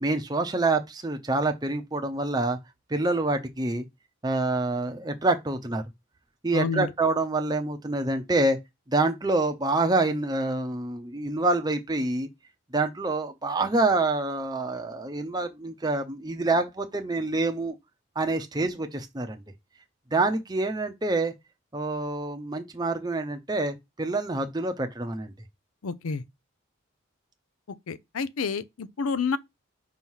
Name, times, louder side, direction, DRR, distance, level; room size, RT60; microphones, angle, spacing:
voice 1, 0.0-2.6 2.9-3.8 4.2-5.8 6.4-8.6 8.9-12.3 12.7-17.8 18.2-19.4 20.1-21.3 21.7-25.3, right 2 dB, 20° right, 0.6 m, -26 dB
voice 2, 6.5-6.9 25.8-26.2 27.9-29.4, left 4 dB, 85° left, 0.5 m, -29 dB
5.5 x 3.1 x 5.5 m
head